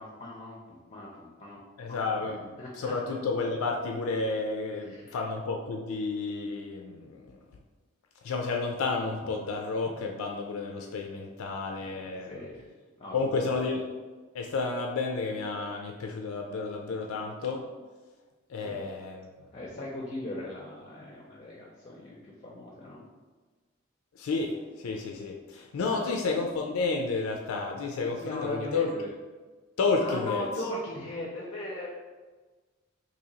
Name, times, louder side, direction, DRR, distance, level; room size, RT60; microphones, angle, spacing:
voice 1, 0.0-1.6 1.9-2.3 2.6-2.9 4.8-5.2 12.0-12.6 13.0-13.5 18.6-18.9 19.5-23.1 25.8-26.1 28.0-29.1 30.0-31.9, left 1 dB, 30° left, -3 dB, 0.5 m, -39 dB
voice 2, 1.8-7.4 8.2-12.4 13.1-13.9 14.3-17.6 18.5-19.3 24.1-28.9 29.8-30.4, left 4 dB, 85° left, 1 dB, 0.4 m, -31 dB
2.8 x 2.7 x 4.0 m, 1.3 s
head